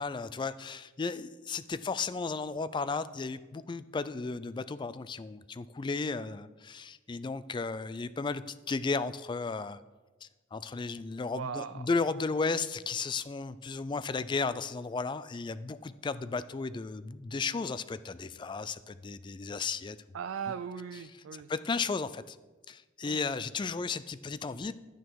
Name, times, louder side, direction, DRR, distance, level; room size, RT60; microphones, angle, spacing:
voice 1, 0.0-9.8 10.2-20.0 21.5-22.4 22.7-24.7, left 4 dB, 25° left, 14 dB, 0.3 m, -34 dB
voice 2, 11.3-11.8 20.1-21.5 23.0-23.2, right 7 dB, 85° right, 11 dB, 0.4 m, -38 dB
10.5 x 9.2 x 4.7 m, 1.2 s
head